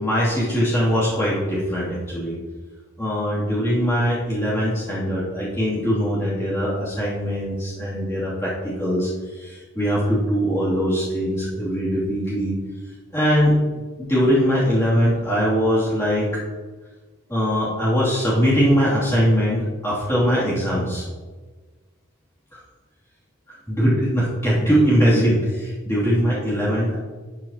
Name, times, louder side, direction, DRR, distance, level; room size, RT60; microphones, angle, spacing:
voice 1, 0.0-2.4 3.0-9.1 9.4-12.5 13.1-13.6 14.0-16.4 17.3-21.0 23.7-27.0, equal, 15° left, -10 dB, 2.8 m, -21 dB
11.5 x 7.4 x 2.9 m, 1.4 s
head